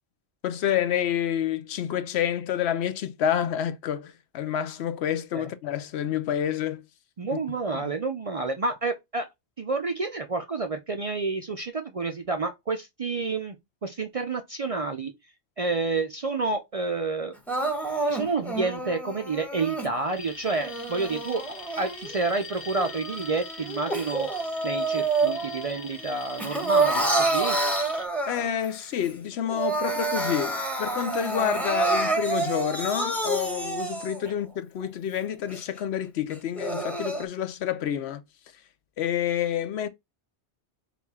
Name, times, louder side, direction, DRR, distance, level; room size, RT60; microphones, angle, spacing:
voice 1, 0.4-6.8 7.3-7.4 7.7-7.9 28.3-38.2 39.0-39.9, left 9 dB, 75° left, 0.8 m, -28 dB
voice 2, 7.2-9.3 9.6-13.6 13.8-15.1 15.6-17.3 18.1-21.4 21.8-24.3 24.6-27.6 34.2-34.3, right 3 dB, 45° right, 0.5 m, -29 dB
Crying sobbing, 17.5-19.9 20.5-22.3 22.8-25.7 26.0-28.7 29.1-29.2 29.5-34.3 34.8-34.9 35.5-35.6 36.3-37.2, right 3 dB, ahead, 0.7 m, -28 dB
Alarm, 20.1-28.1, left 4 dB, 55° left, 1.2 m, -42 dB
4.2 x 2.4 x 4.2 m
omnidirectional pair, 1.1 m